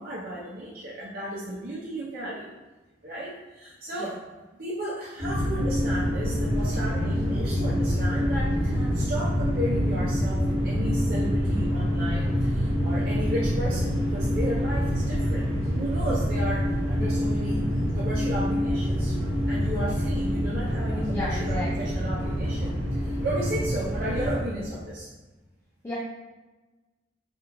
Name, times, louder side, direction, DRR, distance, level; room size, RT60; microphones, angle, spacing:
voice 1, 0.0-2.5 3.0-4.2 4.6-15.5 15.7-17.7 17.9-19.1 19.5-25.1, right 1 dB, 50° right, -8 dB, 0.7 m, -34 dB
sound 1, 5.2-24.4, equal, 30° right, 1.5 m, -26 dB
voice 2, 21.1-21.9 25.8-26.0, left 1 dB, 15° left, -5 dB, 0.5 m, -33 dB
3.5 x 3.0 x 3.8 m, 1.2 s
head